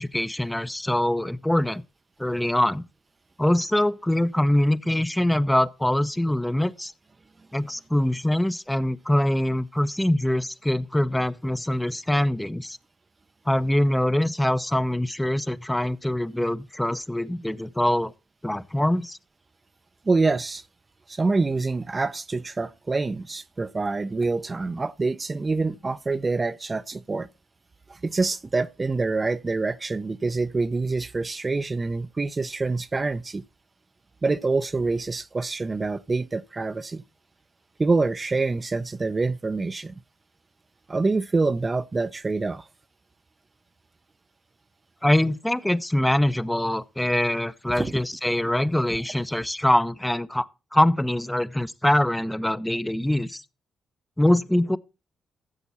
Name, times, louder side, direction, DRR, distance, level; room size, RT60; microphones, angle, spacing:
voice 1, 0.0-1.8 2.2-2.8 3.4-6.9 7.5-12.8 13.5-18.1 18.4-19.2 45.0-53.4 54.2-54.8, left 1 dB, 10° left, 0.7 m, -23 dB
voice 2, 20.1-20.6 21.1-27.3 27.9-33.4 34.2-37.0 37.8-39.9 40.9-42.7 47.7-47.9, right 3 dB, 30° right, 0.6 m, -26 dB
14.5 x 7.1 x 4.2 m
supercardioid pair, 60°, 0 cm